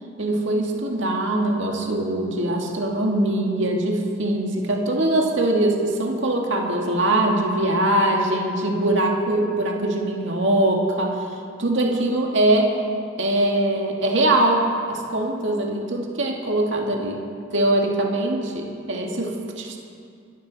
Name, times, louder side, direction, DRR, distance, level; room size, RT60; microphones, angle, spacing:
voice 1, 0.2-11.3 11.6-12.8 13.2-17.2 17.5-19.8, right 1 dB, 70° right, 0 dB, 1.9 m, -22 dB
23.5 x 14.0 x 4.1 m, 2.4 s
head